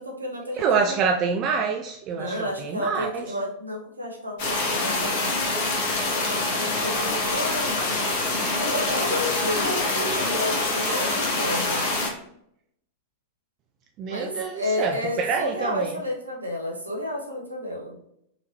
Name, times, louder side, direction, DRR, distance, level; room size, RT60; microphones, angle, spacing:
voice 1, 0.0-0.7 2.1-5.3 6.2-7.8 8.6-11.9 14.1-18.0, left 1 dB, 80° right, 0.8 m, -31 dB
voice 2, 0.5-3.4 14.0-16.0, right 5 dB, 35° right, 0.3 m, -26 dB
sound 1, 4.4-12.1, left 2 dB, 50° left, 1.0 m, -25 dB
4.1 x 2.7 x 2.9 m
figure-of-eight pair, 90°, 0 cm